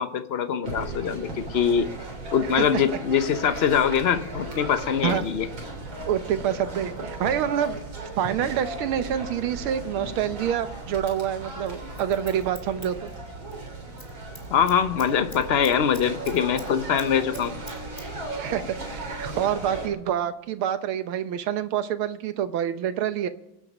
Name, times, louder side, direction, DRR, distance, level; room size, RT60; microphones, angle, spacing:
voice 1, 0.0-1.9 2.3-5.5 14.5-17.5, left 7 dB, 65° left, 11 dB, 0.6 m, -23 dB
sound 1, 0.6-19.9, right 2 dB, 70° right, 4.6 m, -36 dB
voice 2, 6.1-7.8 8.2-13.1 18.3-23.3, right 9 dB, 85° right, 11 dB, 1.9 m, -27 dB
Scissors, 11.6-13.6 13.9-14.1 14.4-16.7 17.0-18.1 18.3-18.4, left 1 dB, 15° left, 2.3 m, -44 dB
25.5 x 8.6 x 5.3 m, 0.88 s
omnidirectional pair, 2.3 m